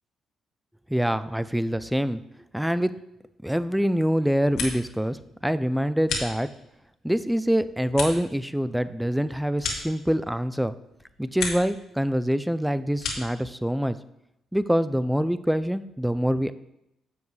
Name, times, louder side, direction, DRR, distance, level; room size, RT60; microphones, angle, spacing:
voice 1, 0.9-2.2 2.5-2.9 3.4-6.5 7.0-10.7 11.2-14.0 14.5-16.5, equal, 5° right, 13 dB, 0.4 m, -25 dB
sound 1, 4.2-5.1 5.4-6.8 7.2-10.5 10.9-11.8 12.1-13.4, left 4 dB, 85° left, 1.9 m, -35 dB
10.0 x 7.1 x 3.3 m, 0.82 s
cardioid pair, 90°, 0 cm